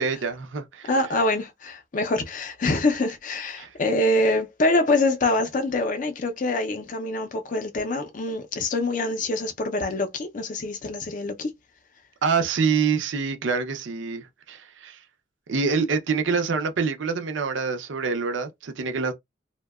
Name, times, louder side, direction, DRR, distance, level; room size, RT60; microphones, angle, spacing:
voice 1, 0.0-0.9 3.6-3.7 12.2-15.0 15.5-19.1, right 5 dB, 75° right, 0.5 m, -26 dB
voice 2, 0.9-11.5, left 2 dB, 40° left, 0.4 m, -25 dB
2.7 x 2.1 x 2.3 m
head